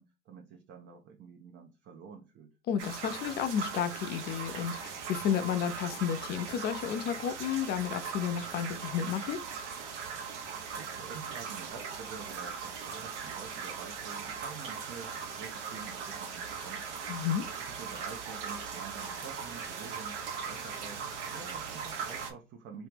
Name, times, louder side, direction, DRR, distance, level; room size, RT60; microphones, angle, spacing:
voice 1, 0.0-2.6 10.7-17.0 17.6-22.9, right 6 dB, 35° right, 0.5 m, -48 dB
voice 2, 2.7-9.4 17.1-17.5, left 8 dB, 30° left, 0.4 m, -32 dB
sound 1, 2.8-22.3, right 6 dB, 75° right, 1.1 m, -39 dB
3.0 x 2.8 x 3.4 m
hypercardioid pair, 95°, 36 cm